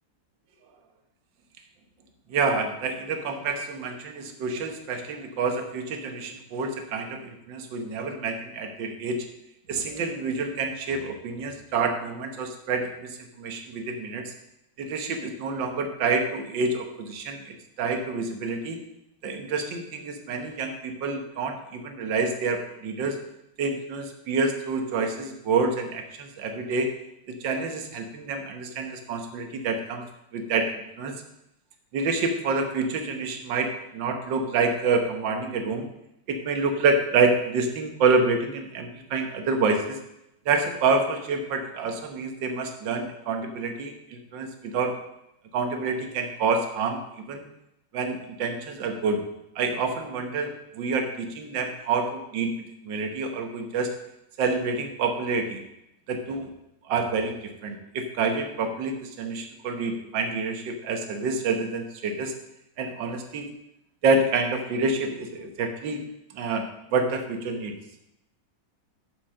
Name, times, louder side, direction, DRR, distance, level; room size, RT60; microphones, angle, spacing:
voice 1, 2.3-9.3 9.7-14.3 14.8-18.8 19.2-23.2 23.6-26.9 27.3-30.0 30.3-31.1 31.9-35.9 36.3-40.0 40.5-45.0 45.5-47.0 47.3-47.5 47.9-49.3 49.6-52.5 52.8-53.9 54.4-55.6 56.1-56.5 56.9-62.3 62.8-63.5 64.0-66.1 66.3-67.7, right 4 dB, 70° right, 5 dB, 1.8 m, -27 dB
7.4 x 7.0 x 6.3 m, 0.84 s
omnidirectional pair, 2.1 m